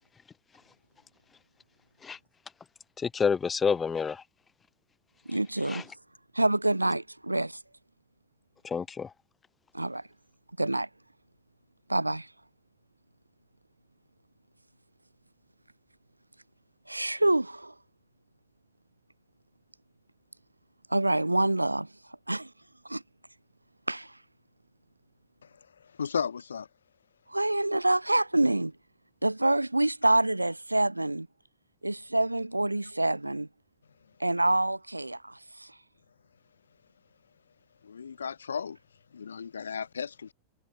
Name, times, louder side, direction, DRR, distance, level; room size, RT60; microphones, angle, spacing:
voice 1, 3.0-4.2 5.7-5.8 8.6-9.1, left 6 dB, 15° left, 1.4 m, -28 dB
voice 2, 5.3-5.9 6.3-7.6 9.7-10.0 10.6-10.9 11.9-12.3 16.9-17.7 20.9-21.9 22.3-22.5 22.9-23.0 23.9-24.1 27.3-28.7 29.2-31.3 31.8-33.5 34.2-35.7, right 1 dB, 85° right, 0.8 m, -26 dB
voice 3, 26.0-26.7 37.8-38.8 39.1-40.3, left 6 dB, 70° left, 1.1 m, -34 dB
figure-of-eight pair, 90°, 0 cm